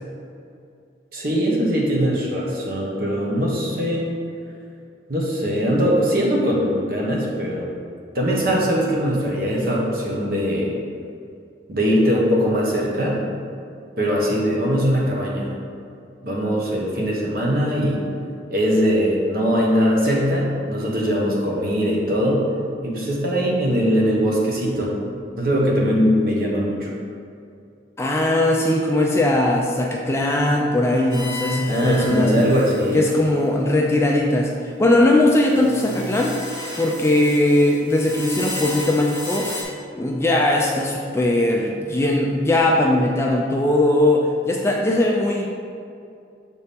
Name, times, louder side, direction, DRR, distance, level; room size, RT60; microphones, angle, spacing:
voice 1, 1.1-4.1 5.1-7.7 8.1-10.7 11.7-13.2 14.0-15.5 16.2-18.0 18.5-22.5 22.8-25.0 25.4-26.9 31.7-33.0, equal, 50° right, -3 dB, 1.1 m, -21 dB
voice 2, 28.0-32.3 32.9-36.4 36.8-39.5 40.0-45.5, left 1 dB, 15° left, 0 dB, 0.4 m, -19 dB
sound 1, 31.1-33.3 35.3-39.6, left 1 dB, 20° right, 1.4 m, -34 dB
6.8 x 4.3 x 3.5 m, 2.5 s
head